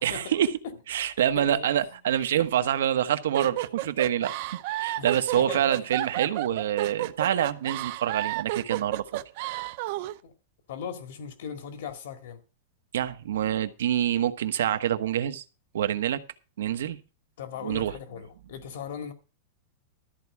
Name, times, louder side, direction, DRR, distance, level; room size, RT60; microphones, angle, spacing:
voice 1, 0.0-0.5 0.9-4.3 4.8-9.2 12.9-15.4 15.7-16.2 16.6-17.0 17.6-17.9, right 10 dB, 85° right, 1.2 m, -26 dB
voice 2, 1.4-1.7 5.0-5.1 5.3-6.0 10.2-10.3 10.7-12.4 17.4-19.1, left 7 dB, 65° left, 2.1 m, -38 dB
sound 1, 3.3-10.2, right 17 dB, 40° right, 0.6 m, -32 dB
13.5 x 4.7 x 8.4 m
supercardioid pair, 175°, 0 cm